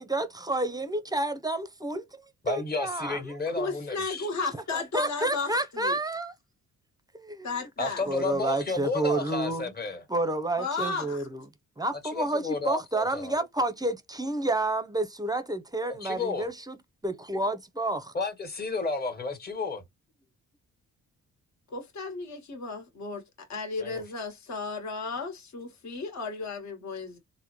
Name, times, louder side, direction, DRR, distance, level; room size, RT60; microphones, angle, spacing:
voice 1, 0.0-3.3 4.7-6.3 7.1-7.6 8.0-9.7 10.1-11.4 11.8-16.8 17.0-18.1, right 2 dB, 10° right, 0.6 m, -30 dB
voice 2, 2.4-4.3 7.8-10.0 12.1-13.3 16.0-16.5 18.1-19.8 23.8-24.0, left 3 dB, 30° left, 1.3 m, -32 dB
voice 3, 3.5-6.0 7.4-8.0 10.6-11.3 21.7-27.2, left 4 dB, 55° left, 1.3 m, -34 dB
3.6 x 2.1 x 2.9 m
cardioid pair, 70°, 32 cm